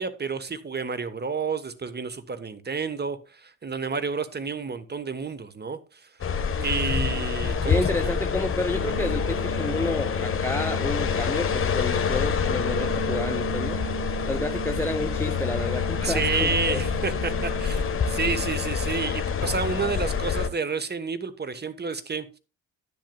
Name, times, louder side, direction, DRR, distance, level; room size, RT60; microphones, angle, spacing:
voice 1, 0.0-6.1 6.6-7.8 16.0-22.3, right 5 dB, 25° right, 1.3 m, -30 dB
sound 1, 6.2-20.5, left 6 dB, 35° left, 1.4 m, -27 dB
voice 2, 7.7-13.8 14.3-16.8, left 2 dB, 5° left, 0.6 m, -30 dB
sound 2, 8.7-18.7, right 14 dB, 70° right, 5.6 m, -39 dB
12.0 x 10.5 x 2.3 m
figure-of-eight pair, 45°, 38 cm